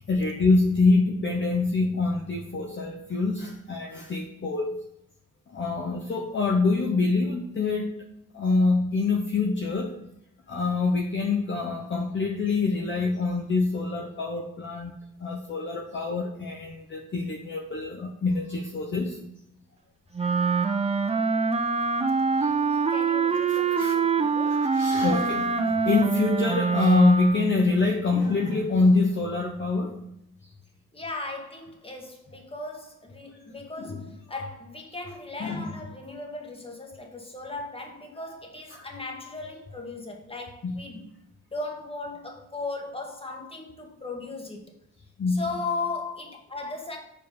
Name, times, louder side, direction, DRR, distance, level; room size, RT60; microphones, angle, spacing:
voice 1, 0.1-4.8 5.5-8.0 8.3-9.9 10.5-14.9 15.2-19.2 20.2-20.3 22.4-22.5 23.5-23.9 24.5-30.0 33.8-34.0 35.4-35.7 38.7-38.9 39.4-39.5 40.6-40.8 45.2-45.5, left 3 dB, 40° left, 0 dB, 1.0 m, -25 dB
Wind instrument woodwind instrument, 20.1-27.6, right 5 dB, 20° right, 0.6 m, -24 dB
voice 2, 22.7-24.6 30.9-41.1 41.5-44.7 45.3-47.0, left 3 dB, 20° left, 2 dB, 1.8 m, -37 dB
4.9 x 4.8 x 5.3 m, 0.82 s
supercardioid pair, 60°, 29 cm